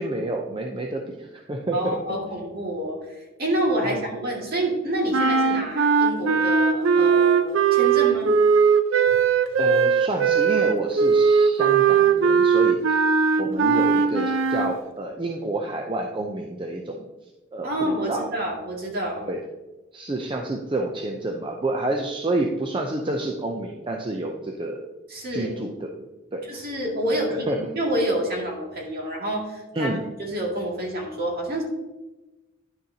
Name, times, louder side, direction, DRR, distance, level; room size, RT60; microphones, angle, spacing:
voice 1, 0.0-2.0 3.9-4.0 9.6-13.0 13.4-17.0 17.5-18.3 19.2-19.4 19.9-24.8 25.3-25.9 26.3-26.6 27.5-27.6 29.7-30.0, right 2 dB, 25° right, 1 dB, 0.6 m, -29 dB
voice 2, 1.7-3.0 3.4-8.4 17.6-19.3 25.1-25.5 26.5-29.9 30.2-31.6, right 1 dB, 50° right, -2 dB, 2.1 m, -28 dB
sound 1, 5.1-14.8, right 6 dB, 90° right, 0.5 m, -19 dB
10.5 x 6.4 x 2.8 m, 1.1 s
head